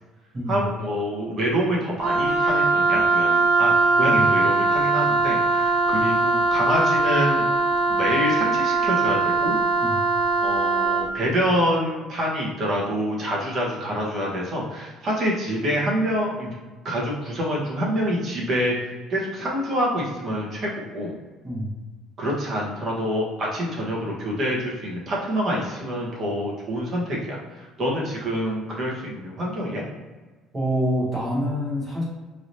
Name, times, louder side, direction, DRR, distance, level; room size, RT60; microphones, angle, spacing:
voice 1, 0.5-7.5 7.9-9.6 10.4-16.5 16.8-21.1 22.2-29.8, equal, 35° right, -3 dB, 1.2 m, -26 dB
Wind instrument woodwind instrument, 2.0-11.1, right 3 dB, 60° right, 0.6 m, -21 dB
voice 2, 4.0-4.4 9.8-10.0 21.4-21.7 30.5-32.0, equal, 20° right, -6 dB, 1.4 m, -26 dB
4.7 x 3.2 x 2.7 m, 1.3 s
cardioid pair, 155°, 0 cm